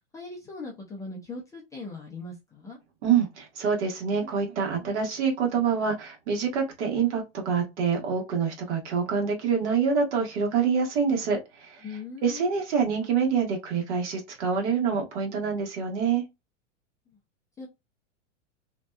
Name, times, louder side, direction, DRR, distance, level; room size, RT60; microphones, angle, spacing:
voice 1, 0.1-2.8 11.8-12.5 17.6-17.7, left 3 dB, 10° left, 0.3 m, -39 dB
voice 2, 3.0-11.8 12.2-16.2, right 6 dB, 65° right, 1.2 m, -26 dB
2.7 x 2.2 x 2.2 m
hypercardioid pair, 120°, 37 cm